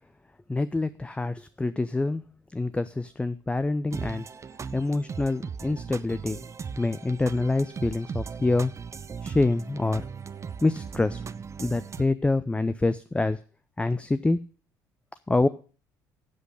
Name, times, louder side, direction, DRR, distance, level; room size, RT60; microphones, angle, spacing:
voice 1, 0.5-2.2 2.5-4.3 4.7-6.4 6.8-8.7 9.2-10.0 10.6-11.2 11.6-13.4 13.8-14.4 15.3-15.5, left 2 dB, 10° left, 13 dB, 0.5 m, -26 dB
sound 1, 3.9-12.0, right 6 dB, 30° right, 0.6 m, -38 dB
8.1 x 7.6 x 7.9 m, 0.39 s
hypercardioid pair, 60°, 10 cm